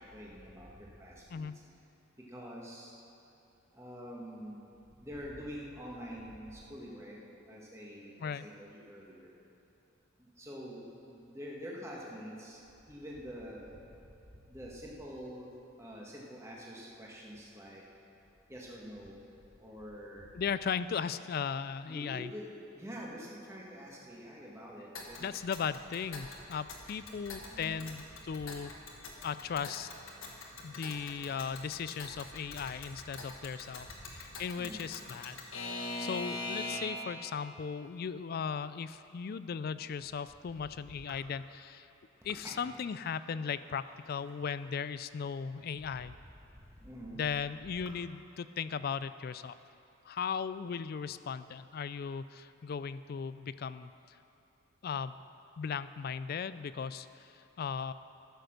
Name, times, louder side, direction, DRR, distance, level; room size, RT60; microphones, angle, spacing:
voice 1, 0.1-1.5 2.3-2.9 3.7-4.6 5.0-7.2 7.5-9.3 10.4-12.6 12.9-13.7 14.5-15.5 15.8-17.8 18.5-19.2 19.6-20.3 21.8-22.4 22.7-25.3 27.5-27.8 34.6-34.9 41.1-41.2 42.4-42.8 46.8-47.3, equal, 15° right, -3 dB, 1.5 m, -46 dB
voice 2, 1.3-1.7 8.2-8.5 20.3-22.3 25.2-28.7 29.2-29.9 30.6-33.9 34.1-35.4 35.7-41.9 42.2-46.2 47.1-49.6 50.1-54.2 54.8-55.1 55.6-57.9, left 6 dB, 45° left, 14 dB, 0.3 m, -37 dB
Alarm / Clock, 25.0-37.1, left 2 dB, 75° left, 1.4 m, -43 dB
14.0 x 6.7 x 6.5 m, 2.9 s
head